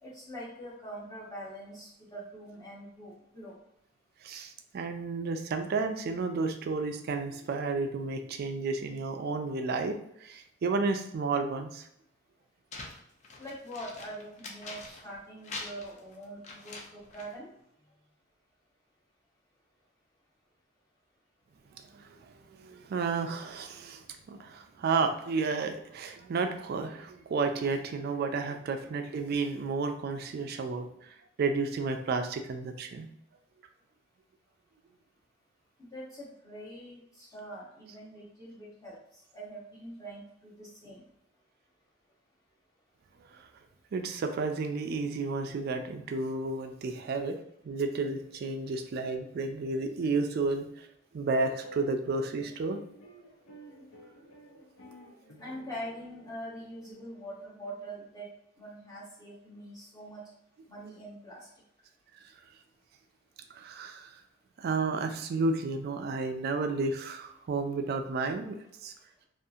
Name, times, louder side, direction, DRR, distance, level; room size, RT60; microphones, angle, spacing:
voice 1, 0.0-3.6 13.4-17.5 35.8-39.0 39.3-41.0 55.4-58.3 58.6-60.2 60.7-61.5, right 1 dB, 15° left, -7 dB, 0.8 m, -44 dB
voice 2, 4.2-10.0 10.2-11.8 22.0-22.1 22.6-33.1 43.3-43.4 43.9-47.4 47.6-50.7 51.1-52.8 63.5-64.1 64.6-68.6 68.8-68.9, right 4 dB, 50° right, 6 dB, 0.3 m, -32 dB
paper sheets handling flapping grab pick up, 12.7-15.2 15.4-17.4, left 3 dB, 35° left, 0.4 m, -44 dB
sound 1, 51.6-58.1, right 1 dB, 80° left, 0.7 m, -53 dB
2.7 x 2.4 x 2.3 m, 0.75 s
head